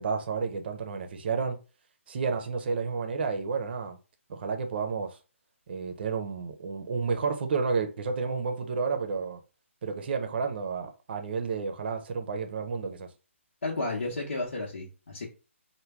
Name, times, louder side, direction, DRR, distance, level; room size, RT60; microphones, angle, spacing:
voice 1, 0.0-1.6 2.1-4.0 4.3-5.2 5.7-9.4 9.8-13.1, right 5 dB, 50° right, 0.6 m, -31 dB
voice 2, 13.6-15.3, left 2 dB, 65° left, 0.9 m, -32 dB
3.2 x 2.2 x 3.3 m
figure-of-eight pair, 140°, 7 cm